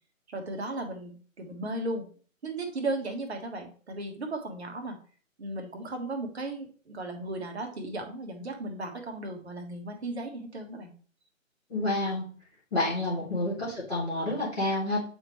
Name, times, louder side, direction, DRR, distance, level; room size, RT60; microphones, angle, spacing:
voice 1, 0.3-2.1 2.4-5.0 5.4-10.9 13.2-13.3, right 2 dB, 50° right, 4 dB, 1.5 m, -36 dB
voice 2, 11.7-12.2 12.7-15.1, left 2 dB, 5° left, -19 dB, 0.6 m, -29 dB
8.6 x 3.7 x 3.1 m, 0.42 s
figure-of-eight pair, 140°, 40 cm